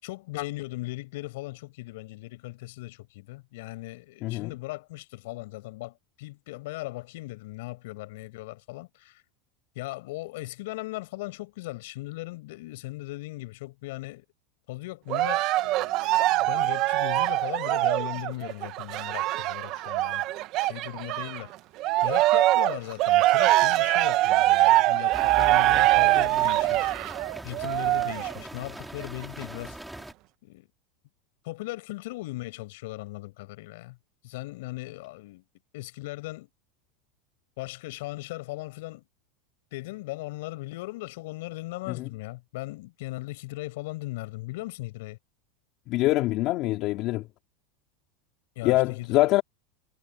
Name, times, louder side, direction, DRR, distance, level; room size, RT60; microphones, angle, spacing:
voice 1, 0.0-9.2 9.8-14.2 14.7-20.2 20.6-21.5 22.0-26.9 27.4-29.8 30.4-30.7 31.4-34.0 34.2-35.4 35.7-36.5 37.6-39.0 39.7-45.2 48.6-49.3, left 20 dB, 70° left, 5.9 m, -38 dB
voice 2, 4.2-4.5 41.9-42.1 45.9-47.3 48.6-49.4, left 18 dB, 45° left, 2.7 m, -24 dB
Cheering, 15.1-21.4 21.8-28.4 29.0-29.1, right 17 dB, 45° right, 1.4 m, -23 dB
sound 1, 25.1-30.1, right 1 dB, 5° right, 4.2 m, -41 dB
supercardioid pair, 135°, 0 cm